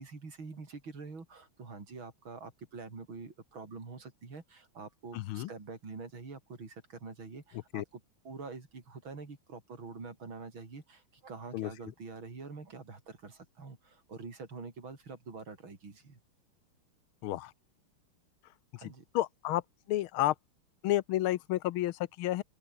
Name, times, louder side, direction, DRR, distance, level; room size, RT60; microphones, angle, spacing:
voice 1, 0.0-16.2 18.8-19.0, right 4 dB, 70° right, 4.8 m, -46 dB
voice 2, 5.1-5.5 7.7-7.8 11.5-11.7 17.2-17.5 19.1-19.6 19.9-20.3 20.8-22.4, left 15 dB, 80° left, 1.6 m, -30 dB
open air
omnidirectional pair, 2.3 m